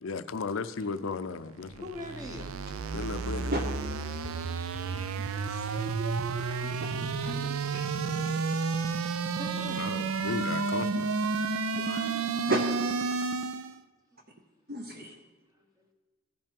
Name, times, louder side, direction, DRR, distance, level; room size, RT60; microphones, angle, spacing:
voice 1, 0.0-1.9 2.9-3.5 9.6-11.1, left 4 dB, 65° left, 13 dB, 0.5 m, -35 dB
sound 1, 1.6-13.8, right 4 dB, 75° right, 0.5 m, -31 dB
voice 2, 1.8-2.5 6.7-6.9 7.4-7.5 8.8-9.0 9.4-9.9 13.1-13.3 15.1-15.2 15.5-15.9, left 1 dB, 15° right, 3 dB, 0.9 m, -43 dB
voice 3, 3.1-3.6 4.2-4.4 4.9-5.8 6.8-7.8 11.7-13.3 14.7-15.1, right 2 dB, 45° right, 3 dB, 0.8 m, -36 dB
15.0 x 5.5 x 5.2 m, 1.4 s
head